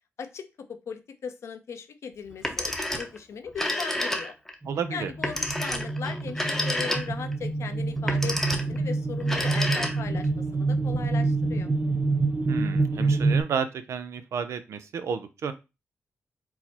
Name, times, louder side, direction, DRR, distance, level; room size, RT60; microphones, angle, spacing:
voice 1, 0.2-4.3 4.9-11.7, left 6 dB, 75° left, 7 dB, 0.6 m, -38 dB
Telephone, 2.3-3.2 3.5-4.5 5.2-7.3 8.0-8.8 9.2-10.2, left 1 dB, 5° left, 0.8 m, -30 dB
sound 1, 4.6-13.4, right 3 dB, 25° right, 0.5 m, -27 dB
voice 2, 4.7-5.1 12.5-15.5, right 6 dB, 80° right, 10 dB, 0.5 m, -31 dB
4.7 x 2.0 x 4.1 m, 0.26 s
cardioid pair, 95°, 5 cm